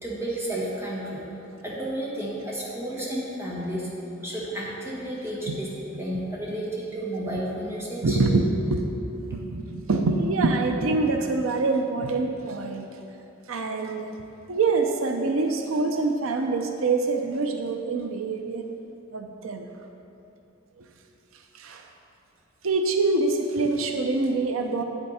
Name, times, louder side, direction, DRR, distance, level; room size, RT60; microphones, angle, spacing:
voice 1, 0.0-1.2 1.6-3.9 4.2-5.7 6.0-8.2, right 1 dB, 15° right, -5 dB, 1.7 m, -32 dB
voice 2, 8.0-8.9 9.3-12.9 13.5-14.1 14.5-18.7 19.1-19.7 21.5-21.8 22.6-24.8, right 3 dB, 85° right, 5 dB, 0.6 m, -25 dB
8.8 x 8.0 x 4.2 m, 2.8 s
head